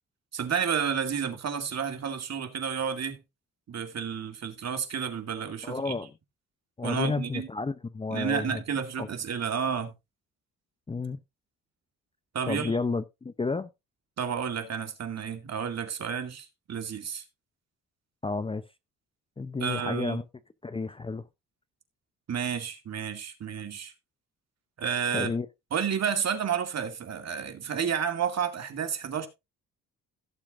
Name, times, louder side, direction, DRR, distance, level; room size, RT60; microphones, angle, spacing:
voice 1, 0.3-3.2 3.7-5.9 6.8-7.5 8.1-9.9 12.3-12.8 14.2-17.2 19.6-20.2 22.3-23.9 24.8-25.3 25.7-29.3, right 7 dB, 50° right, 2.3 m, -31 dB
voice 2, 5.6-6.1 6.8-8.6 9.0-9.1 10.9-11.2 12.5-13.7 18.2-18.6 19.4-20.2 20.6-21.2 25.1-25.5, left 4 dB, 15° left, 0.6 m, -31 dB
17.0 x 7.1 x 2.5 m
cardioid pair, 80°, 33 cm